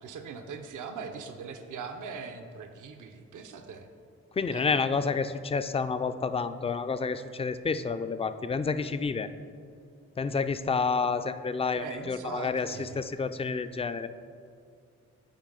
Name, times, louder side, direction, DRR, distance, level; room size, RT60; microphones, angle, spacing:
voice 1, 0.0-3.9 4.5-4.7 11.7-13.0, right 5 dB, 70° right, 6 dB, 0.6 m, -41 dB
voice 2, 4.3-9.3 10.2-14.1, left 4 dB, 20° left, 11 dB, 0.3 m, -29 dB
7.3 x 4.6 x 3.8 m, 2.3 s
supercardioid pair, 45°, 32 cm